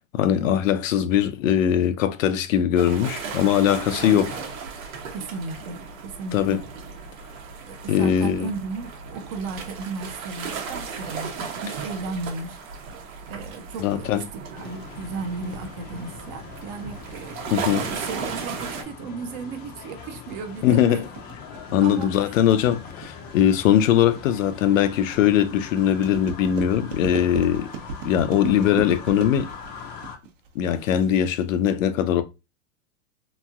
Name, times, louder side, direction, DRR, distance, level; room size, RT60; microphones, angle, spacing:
voice 1, 0.1-4.4 6.3-6.6 7.9-8.5 13.8-14.2 17.5-17.9 20.6-21.1 21.7-27.7 28.0-29.5 30.6-32.2, left 10 dB, 70° left, 0.6 m, -21 dB
sound 1, 2.7-18.8, right 5 dB, 85° right, 1.1 m, -36 dB
voice 2, 5.1-6.6 7.7-12.6 13.3-21.0 21.8-22.3, right 4 dB, 35° right, 0.5 m, -35 dB
sound 2, 14.5-30.2, left 6 dB, 25° left, 0.5 m, -41 dB
sound 3, 19.7-31.7, right 4 dB, 65° right, 0.9 m, -37 dB
3.0 x 2.6 x 2.3 m
hypercardioid pair, 135°, 40 cm